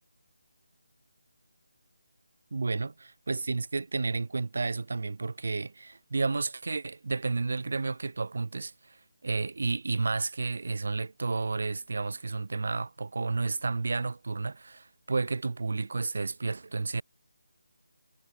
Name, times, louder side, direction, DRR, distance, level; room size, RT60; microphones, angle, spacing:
voice 1, 2.5-2.9 3.3-17.0, right 3 dB, 60° right, 0.4 m, -31 dB
figure-of-eight pair, 165°, 0 cm